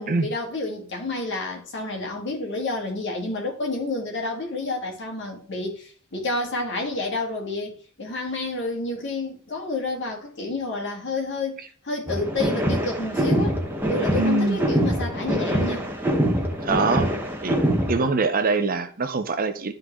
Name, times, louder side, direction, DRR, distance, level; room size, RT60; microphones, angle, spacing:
voice 1, 0.0-13.6 13.9-15.9, left 2 dB, 55° left, 1.8 m, -29 dB
sound 1, 12.1-18.1, equal, 10° right, 0.9 m, -24 dB
voice 2, 14.2-14.6 16.6-17.1 17.4-17.6 17.9-19.7, right 3 dB, 40° right, 0.6 m, -23 dB
11.5 x 3.8 x 3.1 m
head